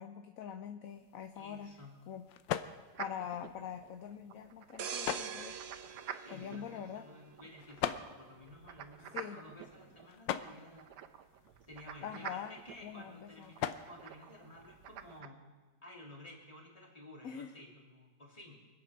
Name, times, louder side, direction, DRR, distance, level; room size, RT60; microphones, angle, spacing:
voice 1, 0.0-1.7 2.1-2.3 3.0-5.6 6.3-7.1 9.1-9.4 12.0-13.5 17.2-17.5, left 8 dB, 60° left, 8 dB, 1.0 m, -44 dB
sound 1, 0.9-15.2, left 10 dB, 90° left, 1.4 m, -44 dB
voice 2, 1.3-2.0 6.2-10.9 11.7-15.5 15.8-18.6, left 1 dB, 20° left, -1 dB, 3.0 m, -53 dB
sound 2, 2.9-15.3, right 9 dB, 75° right, 1.3 m, -50 dB
sound 3, 4.8-7.5 7.9-8.1, right 7 dB, 55° right, 0.7 m, -43 dB
25.0 x 8.7 x 5.9 m, 1.4 s
omnidirectional pair, 1.9 m